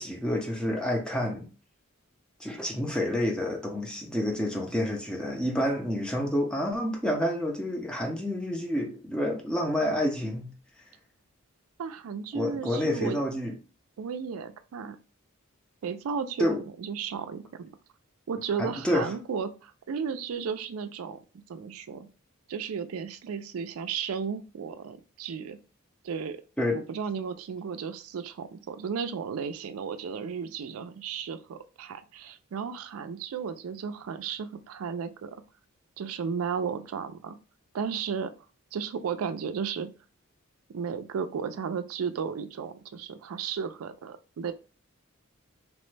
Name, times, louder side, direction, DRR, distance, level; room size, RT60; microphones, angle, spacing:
voice 1, 0.0-1.5 2.4-10.5 12.3-13.5 16.4-16.6 18.6-19.1 26.6-26.8, left 1 dB, 5° left, 0.5 m, -29 dB
voice 2, 11.8-13.2 14.0-15.0 15.8-17.7 18.3-21.2 21.5-22.1 22.5-25.6 26.0-26.4 26.7-35.4 36.0-37.4 37.7-38.3 38.7-39.9 40.7-44.5, right 6 dB, 80° right, 0.4 m, -34 dB
2.9 x 2.1 x 3.2 m
head